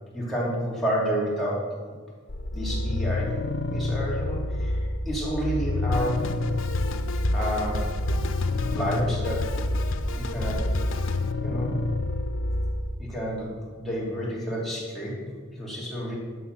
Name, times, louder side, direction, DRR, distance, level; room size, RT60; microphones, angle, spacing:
voice 1, 0.1-1.6 2.5-3.3 3.7-6.2 7.3-8.2 8.7-9.4 10.1-10.6 11.4-11.7 13.0-16.1, equal, ahead, -7 dB, 2.8 m, -30 dB
sound 1, 2.3-12.9, left 2 dB, 55° left, 0.7 m, -28 dB
Drum kit, 5.9-11.3, left 2 dB, 90° left, 0.7 m, -32 dB
11.5 x 7.0 x 6.6 m, 1.6 s
head